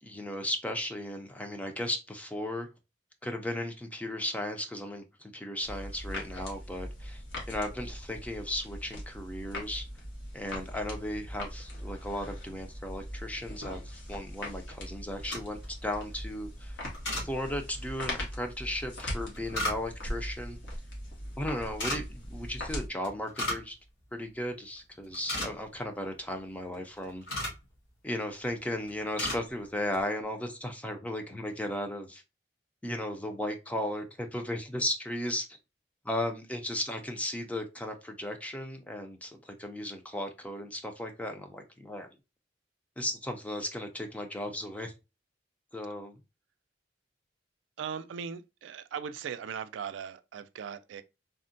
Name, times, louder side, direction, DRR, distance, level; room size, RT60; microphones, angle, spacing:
voice 1, 0.0-2.7 3.2-7.2 7.5-9.9 10.3-16.9 17.2-20.6 21.4-23.8 24.1-27.3 28.0-32.2 32.8-35.6 36.0-42.1 43.0-44.9 45.7-46.2, left 1 dB, 10° left, 0.4 m, -36 dB
sound 1, 5.6-22.9, left 1 dB, 90° left, 1.2 m, -40 dB
sound 2, 15.1-15.7 16.9-17.3 19.0-20.1 21.7-22.0 23.0-23.7 24.0-24.1 24.6-24.8 25.0-25.8 26.7-27.6 28.4-28.6 28.9-29.4 29.8-30.0, left 1 dB, 70° left, 1.5 m, -35 dB
voice 2, 47.8-51.0, right 7 dB, 90° right, 0.3 m, -39 dB
3.5 x 2.1 x 2.5 m
head